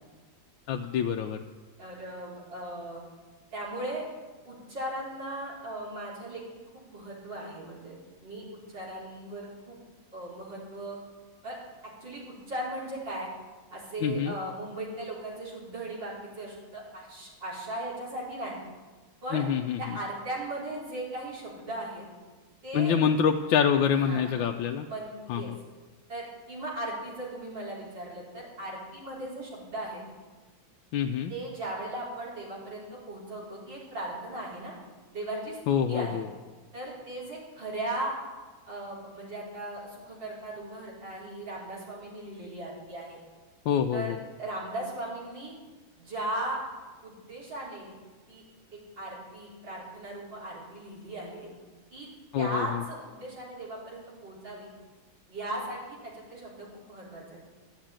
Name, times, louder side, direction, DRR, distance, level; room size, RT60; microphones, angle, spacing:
voice 1, 0.7-1.4 14.0-14.3 19.3-19.8 22.7-24.9 25.3-25.4 30.9-31.3 35.7-36.2 43.7-44.2 52.3-52.8, left 7 dB, 80° left, 4 dB, 1.4 m, -26 dB
voice 2, 1.8-3.0 3.5-4.1 4.4-6.4 6.7-7.9 8.2-9.8 10.1-11.0 11.4-11.6 11.8-13.3 13.7-18.6 19.2-19.4 19.8-22.0 22.6-23.0 24.0-24.4 24.9-25.5 26.1-30.0 31.3-34.7 35.1-36.2 36.7-38.2 38.7-43.2 43.9-45.5 46.0-46.6 47.0-48.0 48.3-48.4 48.7-51.5 51.9-52.1 52.4-54.7 55.3-57.4, right 1 dB, 65° right, -6 dB, 5.1 m, -37 dB
13.0 x 8.1 x 8.8 m, 1.3 s
omnidirectional pair, 2.2 m